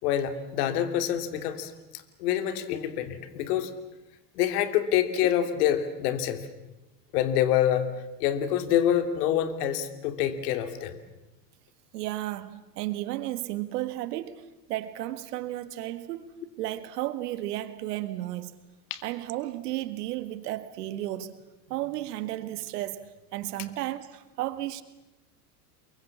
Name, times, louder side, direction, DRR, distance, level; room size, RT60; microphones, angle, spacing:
voice 1, 0.0-3.7 4.4-6.5 7.1-7.9 8.2-11.0 18.9-19.0, left 10 dB, 70° left, 2.9 m, -26 dB
voice 2, 11.9-16.3 16.6-18.6 19.0-21.4 21.7-24.8, right 15 dB, 75° right, 1.9 m, -33 dB
29.0 x 23.0 x 7.2 m
hypercardioid pair, 95°, 48 cm